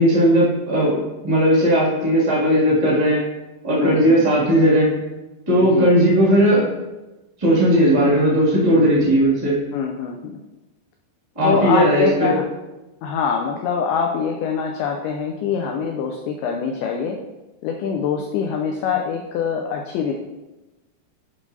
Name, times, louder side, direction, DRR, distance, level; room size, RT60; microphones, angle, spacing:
voice 1, 0.0-3.2 3.6-4.9 5.5-6.7 7.4-9.5 11.3-12.3, equal, 55° right, -7 dB, 0.3 m, -17 dB
voice 2, 3.8-4.3 5.6-5.9 9.7-10.4 11.4-12.4 13.0-17.2 17.6-20.1, left 6 dB, 85° left, 2 dB, 2.2 m, -24 dB
10.5 x 5.1 x 2.7 m, 1.1 s
omnidirectional pair, 5.0 m